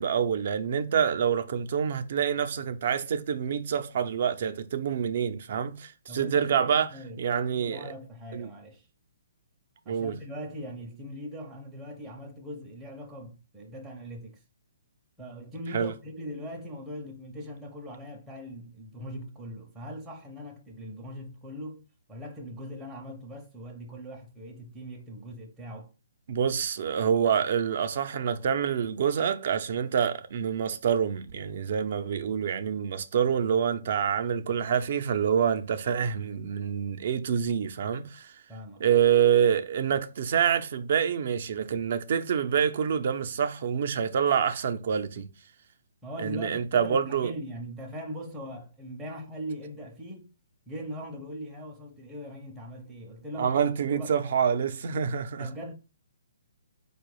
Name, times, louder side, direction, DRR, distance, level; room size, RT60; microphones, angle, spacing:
voice 1, 0.0-6.9 7.2-7.9 8.3-8.5 9.9-10.1 15.7-15.9 26.3-38.3 38.8-45.3 46.2-47.3 53.4-55.5, right 8 dB, 55° right, 0.6 m, -26 dB
voice 2, 6.1-8.9 9.9-14.4 15.2-25.9 38.5-39.0 46.0-50.3 50.7-53.6 53.9-54.2 55.4-55.7, equal, 10° right, 0.6 m, -41 dB
4.6 x 2.3 x 4.8 m
hypercardioid pair, 160°, 0 cm